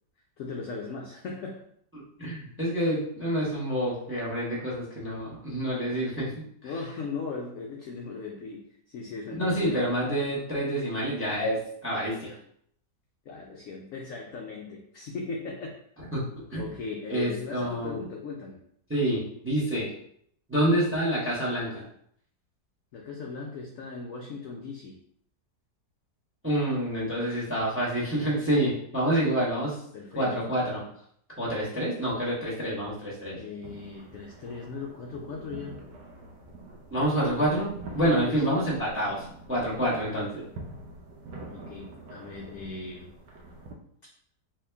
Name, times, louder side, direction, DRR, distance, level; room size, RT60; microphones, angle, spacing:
voice 1, 0.4-1.7 6.6-9.9 13.3-15.8 16.6-18.6 22.9-25.0 29.9-30.4 33.3-35.9 38.0-38.6 41.5-43.1, left 4 dB, 75° left, 0 dB, 0.7 m, -38 dB
voice 2, 2.2-6.3 6.6-6.7 9.4-12.3 16.1-16.6 17.1-18.0 18.9-19.9 20.5-21.8 26.4-29.8 30.1-30.8 31.4-33.4 36.9-40.4, right 1 dB, 10° right, -6 dB, 0.7 m, -27 dB
sound 1, 33.6-43.7, right 2 dB, 85° right, 1.3 m, -45 dB
3.1 x 2.8 x 3.4 m, 0.68 s
omnidirectional pair, 1.9 m